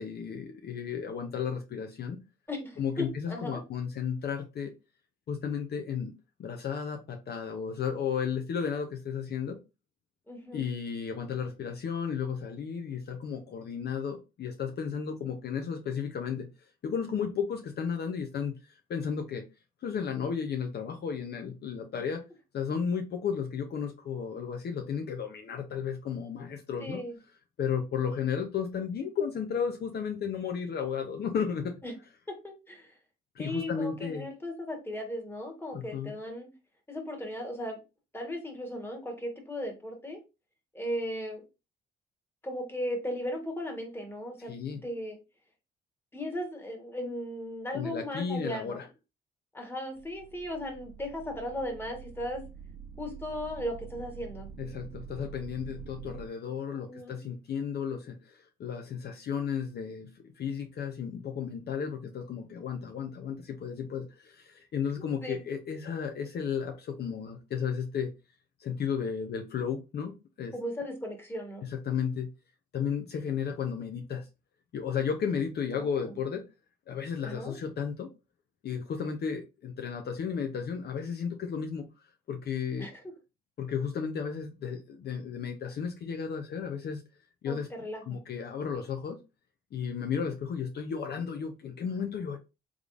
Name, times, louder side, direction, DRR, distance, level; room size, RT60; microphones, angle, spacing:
voice 1, 0.0-2.2 2.8-4.7 5.3-6.1 6.4-9.6 10.5-16.5 16.8-19.4 19.8-22.2 22.5-27.0 27.6-31.8 33.4-34.3 35.7-36.1 44.5-44.8 47.7-48.9 54.6-68.1 68.6-70.5 71.7-72.3 72.7-74.3 74.7-76.4 76.9-78.1 78.6-81.9 82.3-82.9 83.6-87.0 87.4-87.7 88.1-89.2 89.7-92.4, left 7 dB, 55° left, 0.6 m, -33 dB
voice 2, 2.5-3.6 10.3-10.6 26.8-27.2 31.8-31.9 32.3-32.9 33.4-36.5 36.9-37.8 38.1-40.2 40.7-41.4 42.4-45.2 46.1-48.8 49.5-52.4 53.0-54.5 56.7-57.2 65.0-65.4 70.5-71.7 75.7-76.1 77.2-77.6 82.8-83.0 87.4-88.0, left 1 dB, 10° left, 1.4 m, -37 dB
sound 1, 49.9-56.3, right 7 dB, 60° right, 0.9 m, -46 dB
3.6 x 3.4 x 2.5 m
cardioid pair, 90°, 20 cm